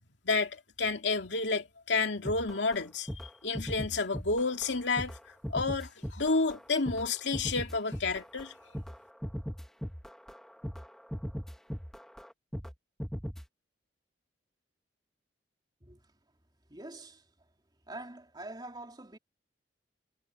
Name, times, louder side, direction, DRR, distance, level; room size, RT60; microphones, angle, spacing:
voice 1, 0.2-3.1 3.4-5.2 5.5-8.5, left 3 dB, 80° left, 2.3 m, -30 dB
sound 1, 2.3-2.8 3.1-3.3 3.5-4.7 5.0-12.7 13.0-13.5, equal, 5° left, 1.6 m, -39 dB
voice 2, 15.8-16.2 16.7-17.5 17.9-19.2, right 2 dB, 25° right, 3.4 m, -46 dB
head